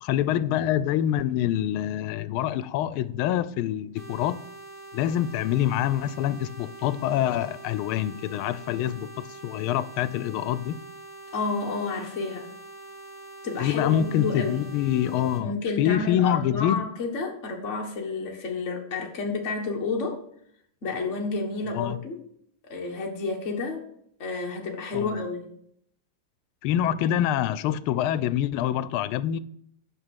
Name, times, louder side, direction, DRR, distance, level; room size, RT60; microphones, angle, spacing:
voice 1, 0.0-4.4 4.9-10.8 13.6-16.8 21.7-22.0 24.9-25.2 26.6-29.4, left 11 dB, 90° left, 1.4 m, -26 dB
sound 1, 4.0-15.4, right 2 dB, 10° left, 2.9 m, -44 dB
voice 2, 11.3-12.5 13.4-14.6 15.3-20.2 20.8-22.2 22.7-23.9 24.2-25.5, left 4 dB, 35° left, 1.9 m, -30 dB
9.6 x 6.2 x 6.2 m
omnidirectional pair, 2.3 m